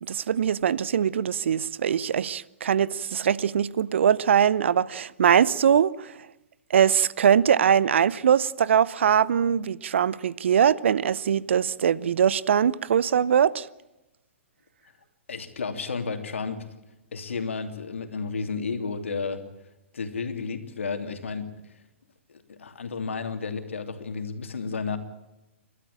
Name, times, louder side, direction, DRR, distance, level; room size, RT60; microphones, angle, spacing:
voice 1, 0.0-6.2 6.7-13.7, right 8 dB, 70° right, 0.8 m, -22 dB
voice 2, 15.3-16.7 17.1-19.4 19.9-21.5 22.3-25.0, left 4 dB, 75° left, 3.0 m, -32 dB
30.0 x 13.0 x 8.7 m
hypercardioid pair, 120°, 7 cm